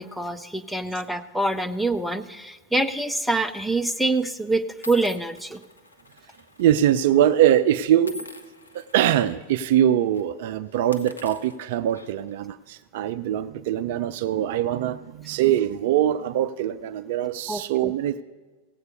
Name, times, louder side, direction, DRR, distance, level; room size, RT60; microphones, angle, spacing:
voice 1, 0.0-5.6 17.5-17.9, right 2 dB, ahead, 7 dB, 0.5 m, -26 dB
sound 1, 3.2-3.5 4.2-4.3 4.8-6.8 7.1-7.3 8.0-9.2 9.6-9.8 10.1-10.3 10.8-12.3, equal, 80° left, 0.7 m, -45 dB
voice 2, 6.6-8.2 8.7-18.2, right 11 dB, 50° right, 14 dB, 0.4 m, -22 dB
17.0 x 8.0 x 5.4 m, 1.3 s
figure-of-eight pair, 90°, 0 cm